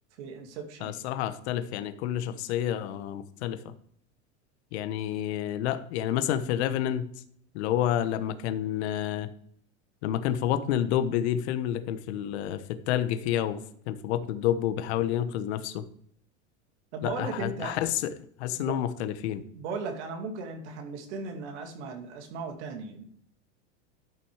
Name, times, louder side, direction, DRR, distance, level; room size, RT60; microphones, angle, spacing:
voice 1, 0.2-1.0 16.9-17.8 18.5-18.8 19.5-23.0, right 4 dB, 80° right, 4 dB, 2.6 m, -37 dB
voice 2, 0.8-3.7 4.7-7.1 7.5-9.3 10.0-13.6 13.9-15.8 17.0-18.0 18.4-19.4, left 11 dB, 70° left, 10 dB, 1.1 m, -29 dB
12.5 x 6.1 x 4.8 m, 0.64 s
supercardioid pair, 120°, 34 cm